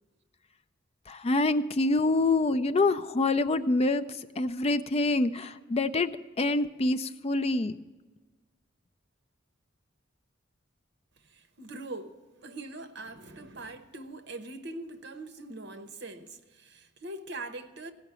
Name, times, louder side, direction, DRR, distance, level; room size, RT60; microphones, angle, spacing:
voice 1, 1.1-7.7, left 2 dB, 30° left, 0.4 m, -26 dB
voice 2, 11.2-17.9, right 2 dB, 60° right, 1.0 m, -42 dB
17.0 x 5.8 x 8.9 m
head